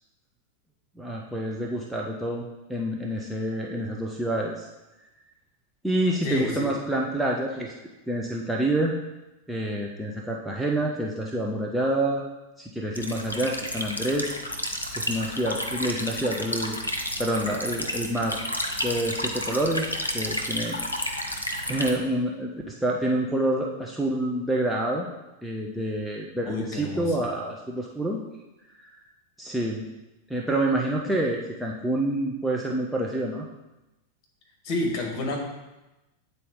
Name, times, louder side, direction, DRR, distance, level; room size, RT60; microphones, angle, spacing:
voice 1, 1.0-4.7 5.8-7.7 8.1-8.9 9.5-12.2 12.6-14.3 15.0-16.8 17.2-18.4 18.8-20.8 21.7-25.0 25.4-28.2 28.8-28.9 29.4-29.9 30.3-33.4, right 1 dB, ahead, -3 dB, 0.6 m, -27 dB
voice 2, 6.2-6.7 26.5-27.2 34.6-35.4, left 2 dB, 40° left, 0 dB, 1.7 m, -29 dB
sound 1, 13.0-21.9, left 1 dB, 85° left, 0.7 m, -31 dB
8.5 x 4.0 x 3.7 m, 1.0 s
figure-of-eight pair, 90°, 0 cm